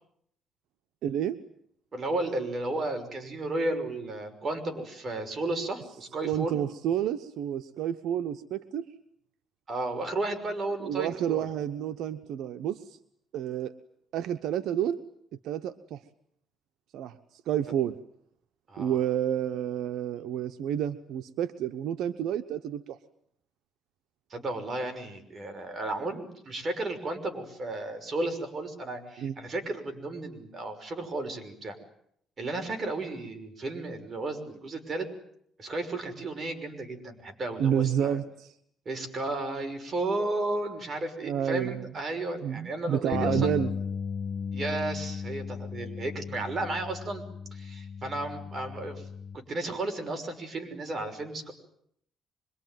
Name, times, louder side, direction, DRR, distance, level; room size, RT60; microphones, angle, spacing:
voice 1, 1.0-1.4 6.2-8.9 10.8-13.0 13.3-13.7 14.1-15.0 15.4-16.0 16.9-18.0 18.8-23.0 29.2-29.3 37.6-38.5 41.2-41.8 42.4-43.7, right 10 dB, 85° right, 9 dB, 1.0 m, -30 dB
voice 2, 1.9-6.6 9.7-11.5 18.7-19.0 24.3-31.8 32.4-35.1 35.6-38.2 38.9-43.6 44.5-47.2 47.5-49.1 49.3-51.5, right 2 dB, 45° right, 6 dB, 6.0 m, -33 dB
Bass guitar, 43.1-49.4, left 6 dB, 60° left, 1.4 m, -35 dB
25.5 x 22.5 x 9.4 m, 0.71 s
cardioid pair, 90°, 0 cm